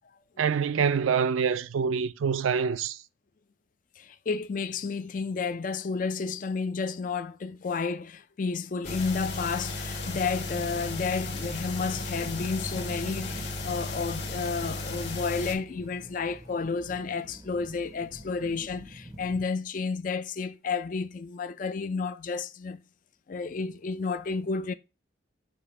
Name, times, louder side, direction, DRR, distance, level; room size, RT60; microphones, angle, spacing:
voice 1, 0.4-3.0, right 6 dB, 85° right, 0.4 m, -26 dB
voice 2, 4.0-22.8 23.3-24.7, left 4 dB, 40° left, 0.3 m, -31 dB
sound 1, 8.8-15.6, left 2 dB, 60° left, 1.5 m, -35 dB
sound 2, 10.4-19.4, right 1 dB, 15° right, 0.5 m, -48 dB
6.8 x 2.5 x 5.4 m
head